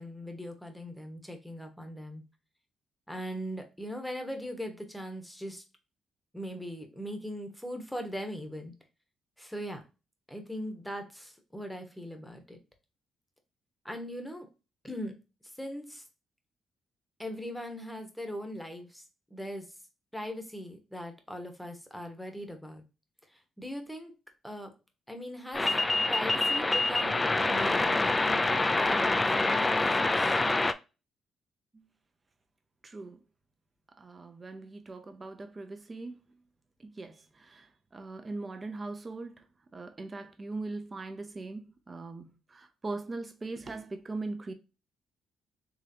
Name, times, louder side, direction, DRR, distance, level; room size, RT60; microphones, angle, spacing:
voice 1, 0.0-2.2 3.1-5.6 6.3-8.7 9.4-9.8 10.3-12.6 13.8-14.5 14.8-15.2 15.4-16.0 17.2-19.0 19.3-19.7 20.1-22.8 23.3-24.1 24.4-24.7 25.1-25.8 26.1-28.5 28.8-30.4, equal, 5° left, 1.1 m, -40 dB
sound 1, 25.5-30.7, left 2 dB, 20° left, 0.4 m, -26 dB
voice 2, 32.8-33.2 34.0-36.1 36.8-39.4 39.7-44.5, right 3 dB, 30° right, 0.8 m, -40 dB
3.8 x 3.2 x 2.7 m
cardioid pair, 90°, 0 cm